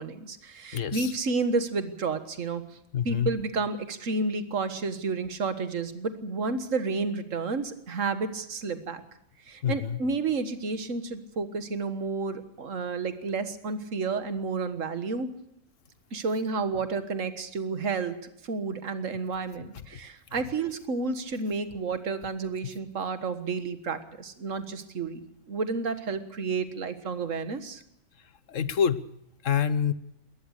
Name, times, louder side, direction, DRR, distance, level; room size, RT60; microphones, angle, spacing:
voice 1, 0.0-2.6 3.1-9.0 9.5-15.3 16.1-18.2 18.4-27.8, right 4 dB, 70° right, 10 dB, 1.9 m, -31 dB
voice 2, 0.7-1.1 2.9-3.3 9.6-10.0 28.5-29.0 29.4-29.9, left 8 dB, 70° left, 15 dB, 1.4 m, -26 dB
21.5 x 19.0 x 6.6 m, 0.77 s
omnidirectional pair, 1.4 m